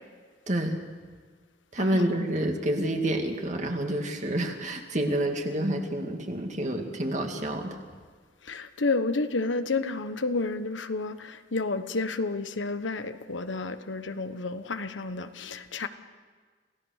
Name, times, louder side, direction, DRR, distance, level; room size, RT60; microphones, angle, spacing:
voice 1, 0.5-0.8 1.7-7.7, right 1 dB, 40° right, 3 dB, 2.2 m, -28 dB
voice 2, 8.5-15.9, left 3 dB, 85° left, 10 dB, 1.1 m, -30 dB
27.0 x 16.5 x 6.5 m, 1.5 s
head